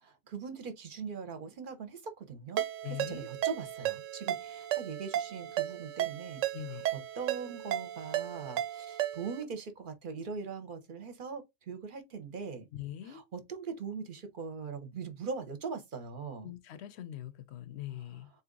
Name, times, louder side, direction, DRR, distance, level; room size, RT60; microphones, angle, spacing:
voice 1, 0.0-2.6 2.9-6.4 6.9-12.7 13.0-16.5, right 5 dB, 45° right, 0.8 m, -41 dB
Ringtone, 2.6-9.4, right 12 dB, 80° right, 0.9 m, -35 dB
voice 2, 2.8-3.3 6.5-6.9 12.7-13.2 16.4-18.3, left 12 dB, 65° left, 0.8 m, -42 dB
3.9 x 2.9 x 3.8 m
omnidirectional pair, 1.3 m